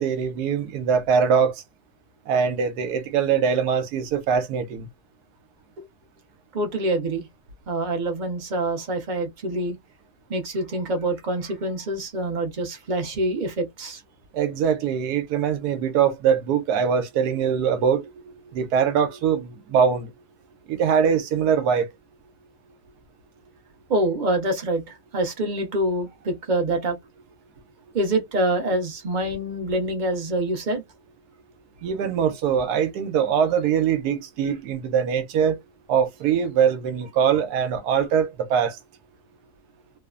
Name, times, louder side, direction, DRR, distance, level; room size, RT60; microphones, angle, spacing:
voice 1, 0.0-1.5 2.3-4.8 14.4-18.0 18.5-20.1 20.7-21.9 31.8-35.6 35.9-38.7, right 7 dB, 90° right, 1.2 m, -22 dB
voice 2, 6.5-7.3 7.7-9.7 10.3-14.0 23.9-27.0 27.9-30.8, right 1 dB, 40° right, 0.7 m, -26 dB
3.0 x 2.0 x 2.3 m
omnidirectional pair, 1.6 m